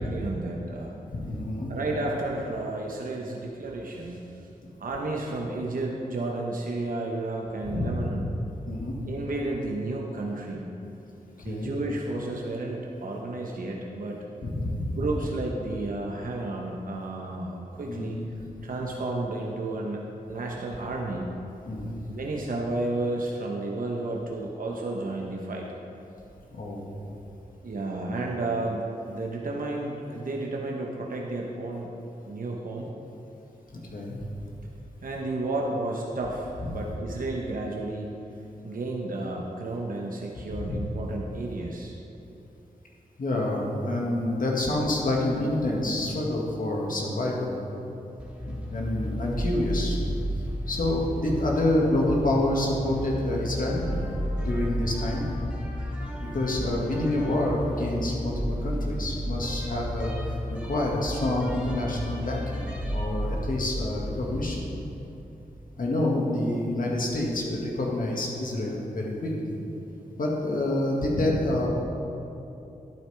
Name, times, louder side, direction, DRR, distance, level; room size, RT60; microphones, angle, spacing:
voice 1, 0.0-0.9 1.7-4.2 4.8-8.3 9.1-10.6 11.4-14.2 15.0-18.2 18.6-21.3 22.1-25.6 27.6-31.9 32.2-32.9 35.0-38.1 38.6-42.0, right 2 dB, 65° right, -1 dB, 1.0 m, -32 dB
voice 2, 1.1-1.7 7.6-7.9 8.7-8.9 11.4-11.7 14.4-15.0 17.9-18.2 21.7-21.9 26.5-26.9 33.7-34.2 36.6-36.7 40.5-40.8 43.2-47.5 48.5-50.1 50.7-54.1 54.4-55.3 56.2-64.7 65.8-69.6 70.2-71.7, left 1 dB, 65° left, -2 dB, 2.0 m, -28 dB
sound 1, 48.2-65.5, equal, 5° right, 1.7 m, -33 dB
11.5 x 8.8 x 3.4 m, 2.9 s
cardioid pair, 50°, 15 cm